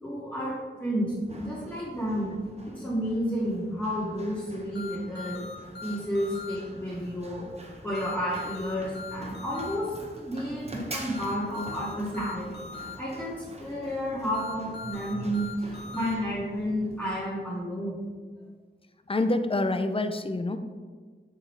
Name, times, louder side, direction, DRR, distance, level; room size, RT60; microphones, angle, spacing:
voice 1, 0.0-2.3 2.6-5.4 5.8-7.5 7.8-12.7 13.0-18.0, equal, 5° left, -10 dB, 2.1 m, -31 dB
Run, 1.1-17.1, right 1 dB, 35° right, 1.0 m, -46 dB
sound 1, 4.7-6.6 7.9-9.8 11.1-12.9 14.3-16.1, left 4 dB, 65° left, 1.2 m, -41 dB
voice 2, 19.1-20.6, left 2 dB, 30° left, 9 dB, 0.4 m, -26 dB
6.6 x 6.0 x 3.3 m, 1.6 s
wide cardioid pair, 95°, 19 cm